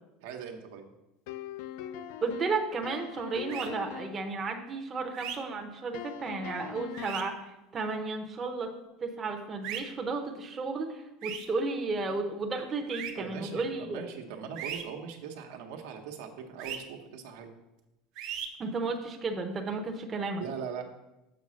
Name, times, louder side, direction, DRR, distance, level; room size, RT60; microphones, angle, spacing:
voice 1, 0.2-0.8 13.2-17.5 20.4-20.8, right 7 dB, 80° right, 3 dB, 1.0 m, -40 dB
sound 1, 1.3-4.3 5.9-7.4, left 9 dB, 65° left, 0.4 m, -42 dB
voice 2, 2.2-8.7 9.0-14.0 18.6-20.4, right 3 dB, 20° right, 3 dB, 0.7 m, -33 dB
sound 2, 3.5-3.7 5.1-5.4 6.9-7.2 9.6-9.8 11.2-11.5 12.9-13.1 14.6-14.8 16.6-16.8 18.2-18.5, right 9 dB, 50° right, 0.8 m, -37 dB
6.9 x 4.2 x 6.2 m, 0.97 s
cardioid pair, 165°, 0 cm